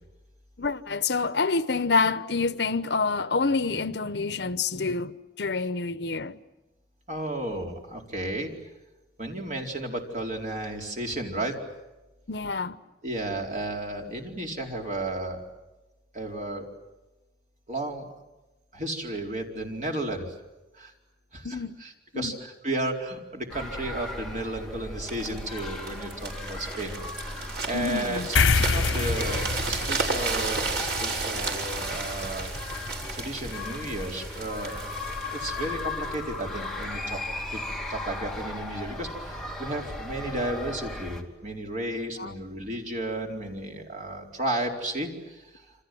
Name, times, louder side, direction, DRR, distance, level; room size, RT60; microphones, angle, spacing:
voice 1, 0.6-6.4 12.3-12.8 21.4-21.7 22.1-22.4 27.7-28.3 42.2-42.3, left 4 dB, 65° left, 0.9 m, -27 dB
voice 2, 7.1-8.5 9.2-11.6 13.0-15.4 16.1-16.6 17.7-18.1 18.7-20.3 20.7-20.9 21.3-32.5 33.1-34.8 35.1-37.2 37.5-37.6 37.9-45.7, right 1 dB, 40° right, 4.4 m, -33 dB
sound 1, 23.5-41.2, left 2 dB, ahead, 2.7 m, -37 dB
sound 2, 25.1-36.9 37.5-37.7, right 4 dB, 65° right, 5.6 m, -33 dB
sound 3, 28.4-35.1, left 4 dB, 90° left, 0.9 m, -30 dB
28.0 x 27.0 x 7.8 m
head